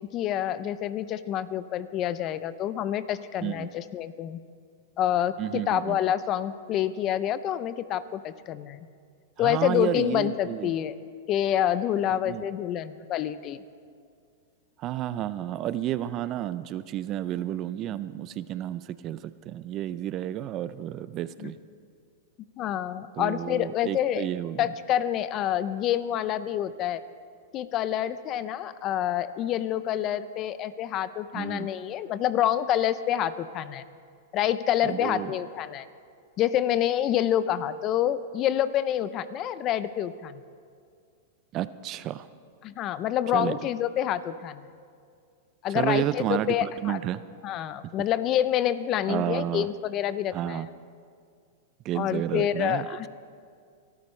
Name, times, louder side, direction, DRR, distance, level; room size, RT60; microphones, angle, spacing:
voice 1, 0.1-4.4 5.0-8.9 9.4-11.0 11.3-13.6 21.4-21.5 22.6-24.3 24.6-27.0 27.5-33.8 34.3-35.9 36.4-40.4 42.6-44.7 45.6-47.0 47.4-50.7 51.9-53.1, left 11 dB, 35° left, 15 dB, 0.5 m, -27 dB
voice 2, 3.4-3.7 5.4-6.0 9.4-10.7 12.3-12.4 14.8-21.6 23.2-24.7 31.3-31.7 34.8-35.4 41.5-42.3 43.3-43.6 45.7-47.2 49.1-49.7 50.3-50.7 51.8-52.9, right 12 dB, 35° right, 15 dB, 0.4 m, -31 dB
24.0 x 12.5 x 3.3 m, 2.2 s
hypercardioid pair, 130°, 0 cm